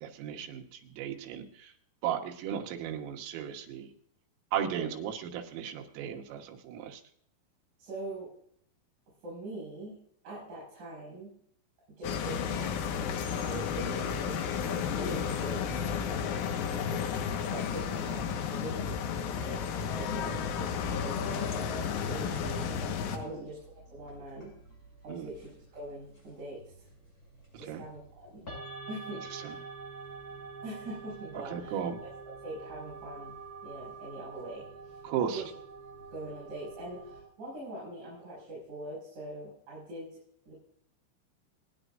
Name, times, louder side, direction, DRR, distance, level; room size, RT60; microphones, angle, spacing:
voice 1, 0.0-0.6 1.0-1.7 2.0-3.9 4.5-7.0 23.2-23.4 25.1-25.3 27.7-27.8 29.3-29.5 31.5-32.0 35.0-35.4, right 9 dB, 90° right, 3 dB, 4.0 m, -35 dB
voice 2, 7.8-8.3 9.2-10.0 10.2-11.3 12.0-15.6 16.6-17.1 17.5-21.4 22.0-24.5 25.0-26.9 27.6-28.5 28.9-29.7 30.6-33.3 33.6-35.5 36.1-40.2 40.4-40.5, right 1 dB, 40° right, -7 dB, 6.4 m, -43 dB
sound 1, 12.0-23.2, left 7 dB, 80° left, 3.8 m, -32 dB
sound 2, 20.9-37.2, right 4 dB, 15° left, 6.5 m, -47 dB
26.5 x 10.0 x 2.6 m, 0.67 s
omnidirectional pair, 5.8 m